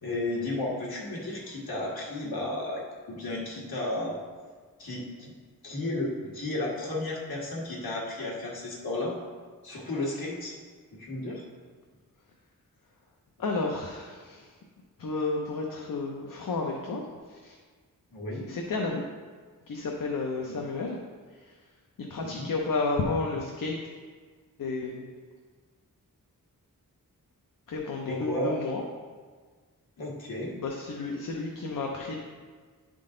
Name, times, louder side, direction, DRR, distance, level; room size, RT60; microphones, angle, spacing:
voice 1, 0.0-2.8 3.1-4.1 4.8-5.3 5.6-9.1 9.6-10.6 11.0-11.4 18.1-18.5 20.4-20.5 22.2-22.5 28.1-28.5 30.0-30.5, left 1 dB, 85° left, -4 dB, 1.7 m, -33 dB
voice 2, 13.4-14.5 15.0-17.0 17.3-17.5 18.5-19.0 19.7-21.0 22.0-23.8 24.6-25.1 27.7-28.8 30.6-32.2, left 3 dB, 65° left, 1 dB, 0.7 m, -31 dB
10.5 x 3.8 x 3.8 m, 1.5 s
wide cardioid pair, 125°, 35 cm